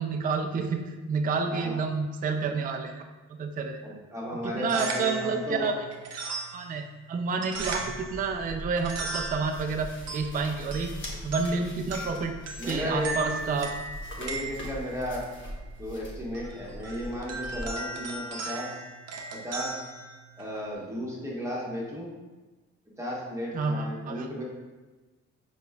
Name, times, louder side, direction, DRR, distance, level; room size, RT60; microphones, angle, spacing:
voice 1, 0.0-3.0 3.4-3.8 4.4-5.9 6.5-6.8 7.1-10.9 11.2-12.3 12.6-13.7 23.5-24.3, right 4 dB, 30° right, 4 dB, 0.4 m, -29 dB
voice 2, 1.5-1.8 3.8-5.6 12.6-13.5 14.2-15.2 15.8-18.8 19.3-19.9 20.4-22.1 23.0-24.4, equal, 10° right, -4 dB, 1.3 m, -34 dB
sound 1, 4.5-20.7, right 3 dB, 55° right, 0.7 m, -38 dB
sound 2, 7.5-17.7, equal, 40° left, 1.1 m, -42 dB
5.0 x 4.5 x 2.3 m, 1.2 s
cardioid pair, 90°, 30 cm